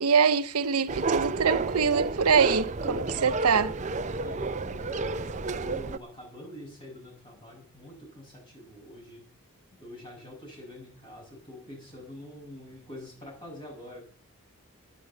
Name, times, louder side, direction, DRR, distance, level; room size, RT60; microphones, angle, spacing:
voice 1, 0.0-3.7, right 6 dB, 90° right, 0.8 m, -24 dB
sound 1, 0.9-6.0, right 3 dB, 30° right, 0.5 m, -30 dB
voice 2, 4.0-9.2 9.8-14.0, left 1 dB, 20° left, 7.3 m, -45 dB
10.0 x 10.0 x 8.0 m
head